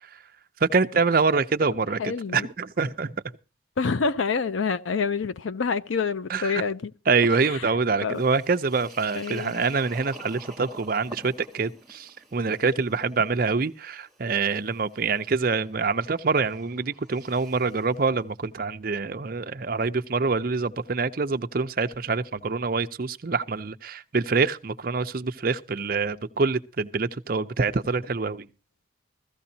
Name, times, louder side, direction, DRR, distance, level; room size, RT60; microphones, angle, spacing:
voice 1, 0.6-3.1 6.3-6.6 7.1-28.5, right 4 dB, 45° right, 0.6 m, -25 dB
voice 2, 2.0-2.5 3.8-6.9 7.4-7.7 8.0-8.2 9.1-9.6, left 5 dB, 80° left, 0.6 m, -27 dB
sound 1, 8.1-17.9, right 1 dB, ahead, 1.3 m, -49 dB
16.0 x 14.5 x 2.8 m
head